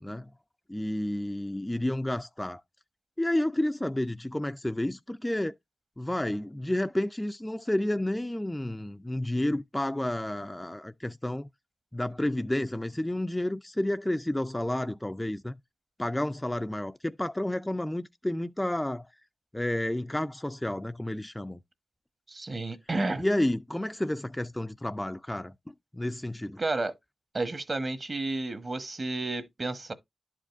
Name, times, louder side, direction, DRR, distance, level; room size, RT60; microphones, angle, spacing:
voice 1, 0.7-2.6 3.2-5.5 6.0-11.5 11.9-15.5 16.0-19.1 19.5-21.6 23.2-25.5 25.9-26.6, left 1 dB, 10° left, 0.4 m, -30 dB
voice 2, 22.3-23.2 26.6-26.9 27.3-29.9, right 2 dB, 40° right, 1.1 m, -31 dB
11.5 x 5.0 x 2.5 m
wide cardioid pair, 85°, 0 cm